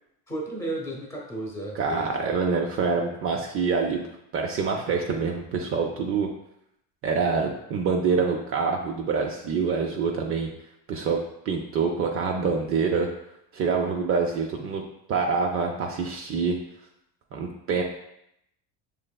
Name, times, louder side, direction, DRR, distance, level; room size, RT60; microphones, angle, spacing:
voice 1, 0.3-2.3, right 1 dB, 5° left, -2 dB, 0.8 m, -34 dB
voice 2, 1.8-4.1 4.3-6.3 7.0-10.5 10.9-11.2 11.5-13.1 13.5-14.8 15.1-16.5 17.3-17.8, right 5 dB, 35° right, 1 dB, 0.4 m, -26 dB
6.4 x 3.2 x 2.2 m, 0.79 s
cardioid pair, 140°, 41 cm